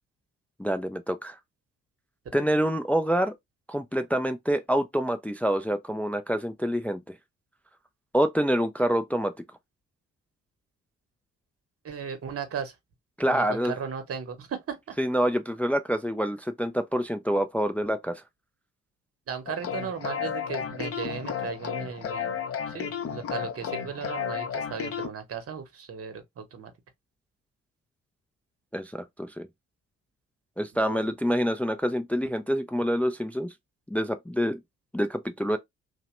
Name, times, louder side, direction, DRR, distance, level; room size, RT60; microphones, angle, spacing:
voice 1, 0.6-1.4 2.3-3.3 3.7-7.0 8.1-9.3 13.2-13.7 15.0-18.2 28.7-29.5 30.6-33.5 33.9-34.6 34.9-35.6, equal, 5° left, 0.4 m, -26 dB
voice 2, 11.8-12.8 13.3-15.0 19.3-22.4 22.7-26.7 30.7-31.0, right 6 dB, 45° right, 1.0 m, -36 dB
sound 1, 19.5-25.1, left 8 dB, 45° left, 0.7 m, -33 dB
2.8 x 2.1 x 3.0 m
hypercardioid pair, 45°, 33 cm